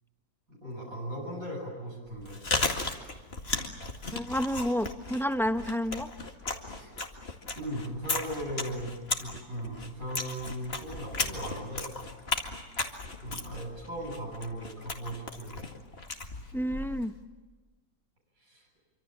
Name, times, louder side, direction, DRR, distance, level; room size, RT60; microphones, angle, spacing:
voice 1, 0.5-2.4 6.8-6.9 7.6-12.0 13.2-15.7 18.4-18.7, equal, 70° right, -3 dB, 8.0 m, -38 dB
Chewing mastication, 2.1-17.2, left 3 dB, 40° left, 2.3 m, -36 dB
voice 2, 4.1-6.1 16.5-17.1, equal, ahead, 8 dB, 0.9 m, -30 dB
26.5 x 25.0 x 7.4 m, 1.3 s
omnidirectional pair, 1.5 m